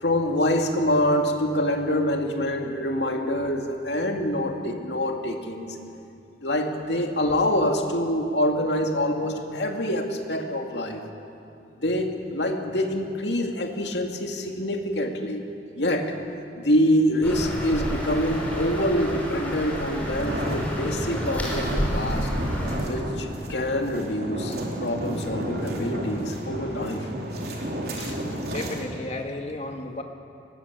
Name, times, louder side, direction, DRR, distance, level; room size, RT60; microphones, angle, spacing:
voice 1, 0.0-5.8 6.4-11.0 11.8-15.5 15.7-16.1 16.6-22.3 22.9-24.6 24.8-27.1 28.0-28.2, left 1 dB, 75° left, 3 dB, 2.4 m, -25 dB
sound 1, 17.2-22.8, equal, 10° left, 5.6 m, -29 dB
sound 2, 20.1-28.8, right 1 dB, 60° right, 3.7 m, -32 dB
voice 2, 28.5-30.0, left 2 dB, 40° left, 4 dB, 2.0 m, -33 dB
23.0 x 20.0 x 8.3 m, 2.7 s
head